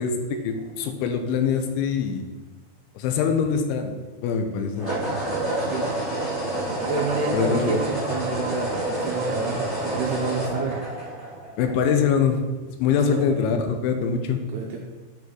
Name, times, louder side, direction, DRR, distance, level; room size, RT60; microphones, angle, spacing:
voice 1, 0.0-2.3 2.9-3.9 4.2-4.9 7.3-7.8 11.6-12.4 12.7-14.4, left 6 dB, 85° left, 6 dB, 3.0 m, -23 dB
sound 1, 0.6-0.8 4.7-11.8, right 1 dB, 25° left, 1.5 m, -28 dB
voice 2, 6.8-10.8 12.9-13.2 14.5-14.8, right 4 dB, 80° right, -1 dB, 2.5 m, -29 dB
8.9 x 5.2 x 3.7 m, 1.2 s
omnidirectional pair, 5.4 m